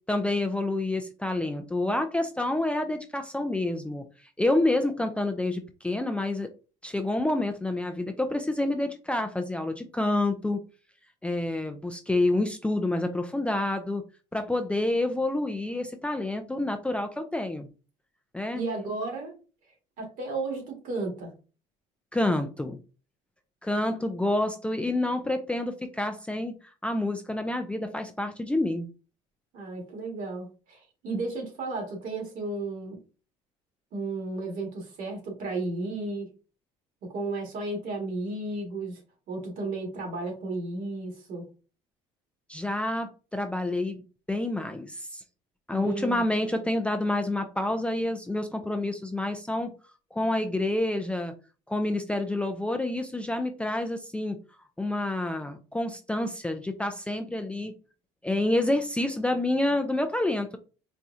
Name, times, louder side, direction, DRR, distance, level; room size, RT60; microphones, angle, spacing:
voice 1, 0.1-4.0 4.4-6.5 6.8-10.6 11.2-14.0 14.3-17.7 18.3-18.6 22.1-22.8 23.6-26.6 26.8-28.9 42.5-44.0 44.3-45.2 45.7-49.7 50.1-51.3 51.7-54.4 54.8-57.7 58.2-60.6, left 2 dB, 10° left, 6 dB, 0.4 m, -28 dB
voice 2, 18.5-19.4 20.0-21.3 29.5-33.0 33.9-36.3 37.0-39.0 39.3-41.5 45.7-46.2, right 2 dB, 60° right, 2 dB, 1.9 m, -33 dB
4.3 x 2.3 x 2.6 m, 0.34 s
supercardioid pair, 85°, 15 cm